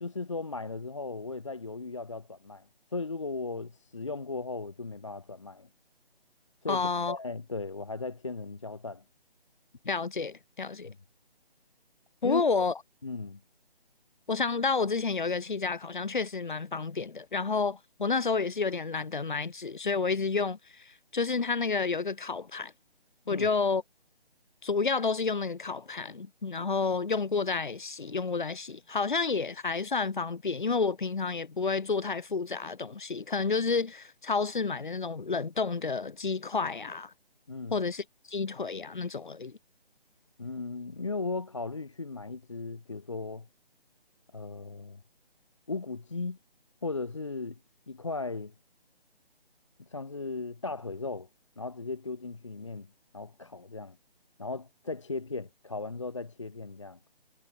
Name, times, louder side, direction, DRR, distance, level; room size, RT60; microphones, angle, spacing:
voice 1, 0.0-2.7 2.9-5.7 6.6-9.0 10.8-11.0 12.2-12.6 13.0-13.4 23.3-23.5 37.5-37.8 40.4-43.5 44.3-45.0 45.7-46.4 46.8-47.6 47.9-48.5 49.8-51.3 51.6-52.9 53.1-54.0 54.4-57.0, left 3 dB, 30° left, 0.6 m, -37 dB
voice 2, 6.7-7.2 9.9-10.9 12.2-12.7 14.3-22.7 23.3-23.8 24.6-37.1 37.7-39.6, left 4 dB, 50° left, 1.9 m, -30 dB
figure-of-eight pair, 150°, 30 cm